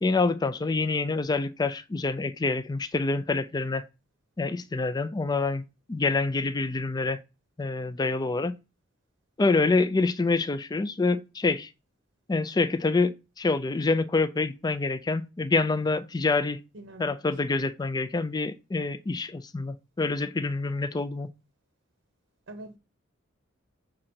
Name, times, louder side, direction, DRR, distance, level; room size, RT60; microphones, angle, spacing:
voice 1, 0.0-3.9 4.4-5.6 5.9-7.2 7.6-8.5 9.4-11.7 12.3-16.6 17.0-21.3, left 3 dB, 20° left, 0.4 m, -26 dB
voice 2, 16.7-17.1 22.5-22.8, right 1 dB, 60° right, 0.7 m, -43 dB
6.4 x 3.8 x 4.4 m
head